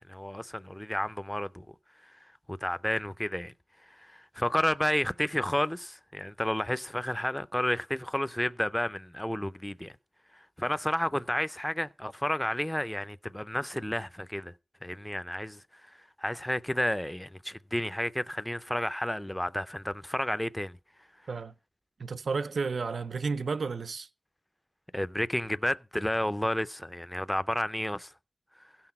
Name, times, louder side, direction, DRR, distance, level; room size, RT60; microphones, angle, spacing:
voice 1, 0.1-1.7 2.0-2.2 2.5-3.5 3.9-9.9 10.3-14.5 14.8-20.8 24.9-28.1, left 1 dB, 10° left, 0.5 m, -31 dB
voice 2, 22.0-24.1, right 4 dB, 90° right, 0.5 m, -32 dB
16.5 x 6.0 x 4.2 m
wide cardioid pair, 85°, 0 cm